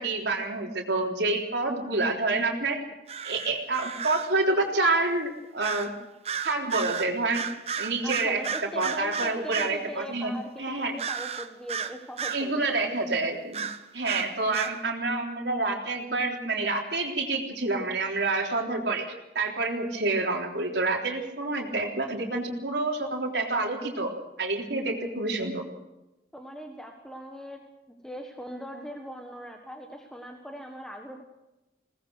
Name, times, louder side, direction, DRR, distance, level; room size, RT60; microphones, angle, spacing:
voice 1, 0.0-2.8 3.2-5.9 6.4-7.5 7.8-8.4 8.8-10.3 10.6-10.9 12.3-13.7 13.9-19.1 19.4-24.1 24.4-25.6, right 3 dB, 85° right, 2 dB, 3.7 m, -28 dB
sound 1, 3.1-4.4 5.6-6.0 6.3-9.8 11.0-12.5 13.5-14.8, right 6 dB, 35° right, 0.9 m, -33 dB
voice 2, 8.0-12.9 26.3-27.6 28.0-31.2, equal, 5° left, 3 dB, 1.5 m, -40 dB
22.0 x 19.0 x 6.5 m, 0.98 s
head